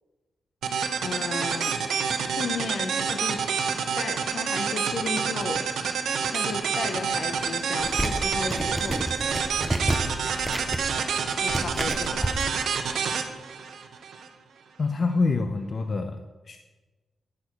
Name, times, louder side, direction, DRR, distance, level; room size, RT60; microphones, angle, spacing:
sound 1, 0.6-14.3, right 6 dB, 85° right, 0.8 m, -28 dB
voice 1, 1.0-1.8 2.2-3.5 4.0-5.7 6.3-9.1 11.4-12.4, left 4 dB, 65° left, 8 dB, 0.9 m, -34 dB
sound 2, 7.8-12.4, right 1 dB, 10° right, 0.7 m, -30 dB
voice 2, 14.8-16.6, left 3 dB, 45° left, 7 dB, 0.5 m, -26 dB
10.0 x 6.3 x 4.7 m, 1.2 s
cardioid pair, 105°, 0 cm